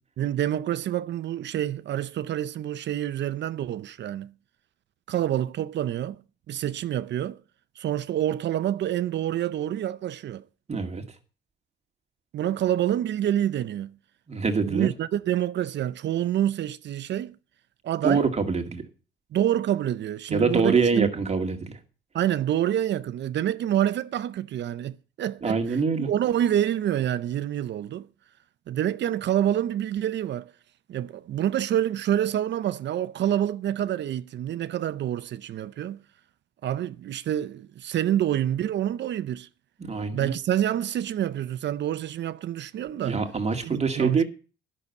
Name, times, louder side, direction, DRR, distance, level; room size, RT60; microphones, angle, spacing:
voice 1, 0.2-4.3 5.1-6.2 6.5-7.4 7.8-10.4 12.3-13.9 14.6-17.3 17.8-18.2 19.3-21.1 22.1-28.1 28.7-30.5 30.9-36.0 36.6-39.5 40.1-43.2 43.6-44.2, right 11 dB, 65° right, 0.6 m, -27 dB
voice 2, 10.7-11.0 14.3-14.9 18.0-18.8 20.3-21.8 25.4-26.1 39.8-40.3 43.0-44.2, right 4 dB, 35° right, 2.1 m, -25 dB
11.0 x 6.8 x 8.2 m
cardioid pair, 90°, 20 cm